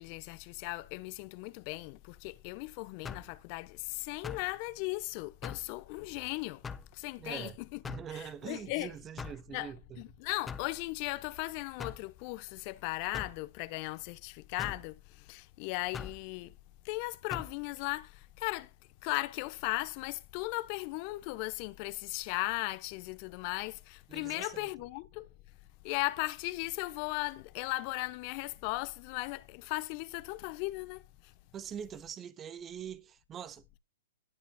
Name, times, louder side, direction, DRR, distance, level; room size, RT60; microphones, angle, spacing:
voice 1, 0.0-6.6 6.9-7.8 8.1-8.9 9.5-16.6 16.8-18.7 19.0-25.3 25.8-31.3, left 22 dB, 40° left, 0.8 m, -37 dB
sound 1, 3.0-3.4 4.2-4.5 5.4-5.7 6.6-6.9 7.8-8.1 9.2-9.5 10.5-10.7 11.8-12.0 13.1-13.4 14.6-14.8 15.9-16.2 17.3-17.5, left 6 dB, 15° left, 0.7 m, -41 dB
voice 2, 7.2-7.6 7.8-10.0 24.1-24.7 31.5-33.8, right 8 dB, 20° right, 0.8 m, -43 dB
18.5 x 7.9 x 2.2 m
hypercardioid pair, 125°, 0 cm